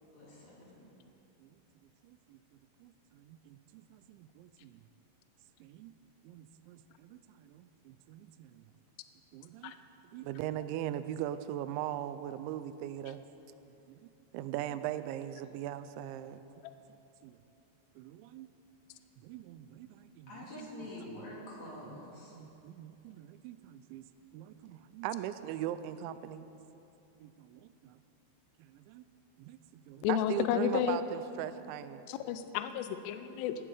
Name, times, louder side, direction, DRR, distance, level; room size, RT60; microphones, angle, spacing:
voice 1, 0.1-0.6 20.3-22.3, left 1 dB, 45° left, -4 dB, 3.2 m, -46 dB
voice 2, 2.0-2.4 2.8-4.8 5.6-5.9 6.2-8.6 9.3-9.8 10.1-13.2 13.9-14.0 14.3-16.4 17.2-17.4 18.0-18.5 19.2-21.2 21.8-22.0 22.3-24.1 24.3-26.5 27.2-28.0 28.6-29.0 29.4-32.1, right 12 dB, 90° right, 12 dB, 2.9 m, -41 dB
voice 3, 30.0-31.0 32.1-33.6, left 10 dB, 80° left, 10 dB, 2.7 m, -31 dB
18.5 x 15.5 x 5.0 m, 2.9 s
omnidirectional pair, 5.2 m